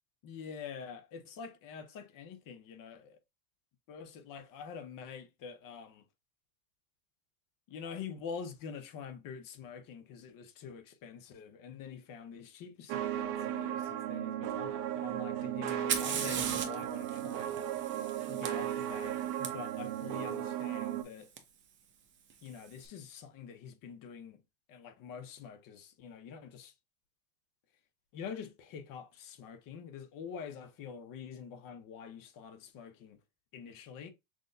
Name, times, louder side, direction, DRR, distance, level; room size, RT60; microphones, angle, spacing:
voice 1, 0.2-3.0 3.9-6.0 7.7-17.6 18.3-21.3 22.4-24.4 24.7-26.7 28.1-33.2 33.5-34.1, left 6 dB, 45° left, 0.9 m, -46 dB
sound 1, 12.9-21.0, right 11 dB, 70° right, 0.9 m, -36 dB
Fire, 15.7-19.5 21.4-21.5 22.3-22.7, right 7 dB, 25° right, 0.7 m, -38 dB
6.0 x 2.2 x 2.6 m
supercardioid pair, 120°, 46 cm